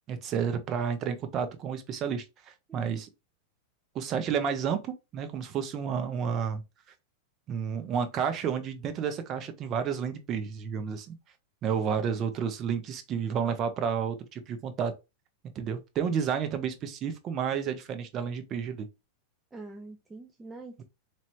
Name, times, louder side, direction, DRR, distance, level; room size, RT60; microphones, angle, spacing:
voice 1, 0.1-2.2 2.7-3.1 3.9-6.6 7.5-11.2 11.6-14.9 15.5-18.9, right 7 dB, 30° right, 0.8 m, -31 dB
voice 2, 2.7-3.1 19.5-20.8, right 2 dB, 10° right, 0.4 m, -45 dB
4.3 x 3.0 x 2.6 m
supercardioid pair, 150°, 0 cm